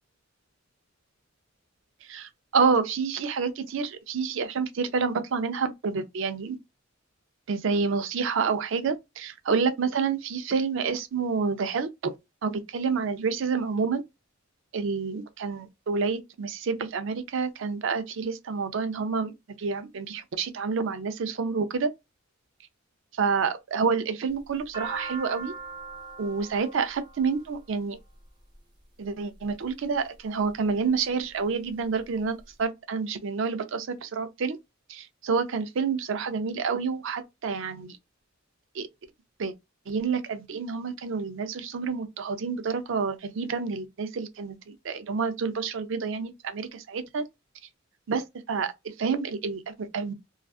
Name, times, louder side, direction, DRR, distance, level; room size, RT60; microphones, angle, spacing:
voice 1, 2.1-6.6 7.5-12.1 12.4-14.0 14.7-19.3 19.6-21.9 23.2-25.5 26.2-28.0 29.0-34.6 34.9-38.0 38.8-38.9 39.4-39.5 39.9-47.2 48.1-48.7 49.0-50.1, right 5 dB, 65° right, 0.5 m, -28 dB
sound 1, 24.3-28.5 29.4-29.8 30.4-31.1 31.4-31.5 31.7-32.5, right 3 dB, 20° right, 0.7 m, -41 dB
2.5 x 2.3 x 2.3 m
head